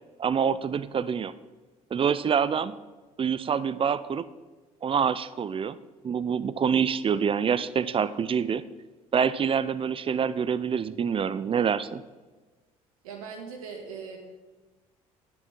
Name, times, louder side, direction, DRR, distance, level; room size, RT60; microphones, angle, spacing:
voice 1, 0.2-1.3 1.9-2.8 3.2-4.3 4.8-5.8 6.0-8.6 9.1-12.0, right 7 dB, 30° right, 16 dB, 0.5 m, -26 dB
voice 2, 13.0-14.2, right 5 dB, 80° right, 1 dB, 1.9 m, -39 dB
9.8 x 7.0 x 6.1 m, 1.3 s
hypercardioid pair, 60°, 18 cm